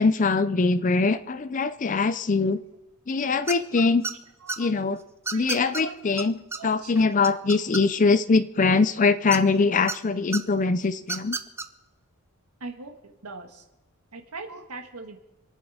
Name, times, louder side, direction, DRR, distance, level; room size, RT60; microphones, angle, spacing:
voice 1, 0.0-2.6 3.1-4.0 4.6-5.0 5.3-11.4, left 4 dB, 35° left, 13 dB, 0.5 m, -22 dB
sound 1, 3.5-3.7 4.0-4.6 5.3-5.8 6.2-6.3 6.5-6.6 7.0-8.1 9.3-10.0 10.3-10.4 11.0-11.7, right 3 dB, 10° right, 0.6 m, -31 dB
voice 2, 4.4-4.8 5.3-6.0 6.6-7.1 12.6-13.6 14.1-15.2, right 3 dB, 90° right, 5 dB, 1.7 m, -41 dB
27.0 x 9.0 x 4.9 m, 0.96 s
head